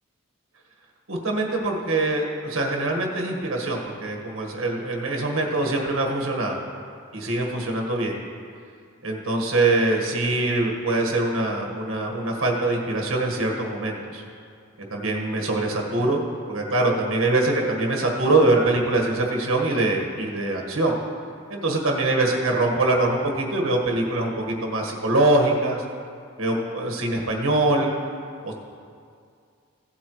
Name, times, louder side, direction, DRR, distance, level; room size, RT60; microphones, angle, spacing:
voice 1, 1.1-6.6 7.1-8.1 9.0-14.2 14.9-16.2 16.5-21.0 21.5-25.8 26.4-27.9 28.4-28.5, right 2 dB, 75° right, 1 dB, 1.5 m, -23 dB
16.0 x 8.5 x 3.1 m, 2.3 s
head